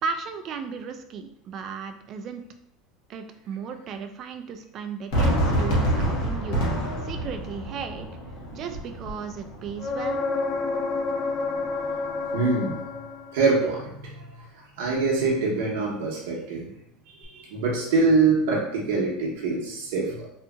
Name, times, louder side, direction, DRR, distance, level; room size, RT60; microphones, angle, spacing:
voice 1, 0.0-2.4 3.1-6.6 7.0-8.1 8.5-10.2, right 6 dB, 40° right, 7 dB, 0.3 m, -35 dB
Fireworks, 5.1-10.2, equal, 65° left, 0.9 m, -27 dB
sound 1, 9.8-13.6 17.2-17.3, left 3 dB, 35° left, 0.3 m, -29 dB
voice 2, 12.3-12.9 13.3-16.7 17.1-20.3, right 3 dB, 85° right, -3 dB, 0.8 m, -25 dB
2.7 x 2.6 x 2.3 m, 0.75 s
supercardioid pair, 140°, 0 cm